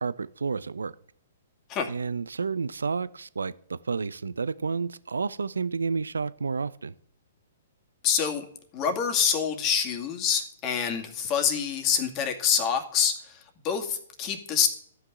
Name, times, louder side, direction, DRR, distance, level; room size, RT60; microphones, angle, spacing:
voice 1, 0.0-0.9 1.9-6.9, right 5 dB, 80° right, 18 dB, 0.5 m, -30 dB
voice 2, 8.0-8.4 8.7-13.4 13.6-14.7, left 7 dB, 30° left, 4 dB, 2.3 m, -26 dB
12.5 x 5.9 x 9.4 m, 0.63 s
hypercardioid pair, 120°, 0 cm